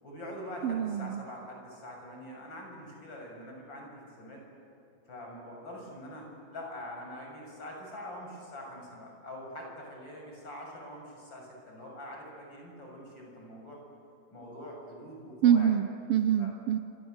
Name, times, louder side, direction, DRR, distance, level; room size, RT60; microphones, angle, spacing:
voice 1, 0.0-4.4 5.1-13.8 14.3-15.8 16.4-16.5, left 1 dB, 40° left, 0 dB, 7.7 m, -44 dB
voice 2, 0.6-1.2 15.4-16.8, right 9 dB, 70° right, 10 dB, 1.5 m, -25 dB
27.0 x 26.5 x 8.0 m, 2.7 s
omnidirectional pair, 3.3 m